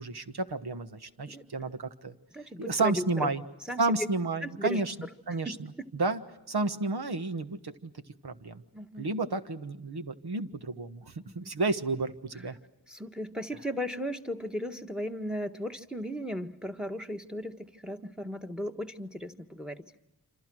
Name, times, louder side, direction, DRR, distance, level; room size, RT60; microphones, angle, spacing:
voice 1, 0.0-2.2 2.6-3.4 3.8-4.9 5.3-5.5 5.9-6.2 6.5-7.9 8.2-8.6 9.0-12.6, right 3 dB, 85° right, 9 dB, 1.4 m, -31 dB
voice 2, 2.3-3.3 3.7-4.0 4.4-4.8 5.4-5.5 8.7-9.1 11.2-11.5 12.9-19.9, equal, ahead, 9 dB, 1.5 m, -36 dB
27.0 x 27.0 x 6.3 m, 0.99 s
wide cardioid pair, 65°, 37 cm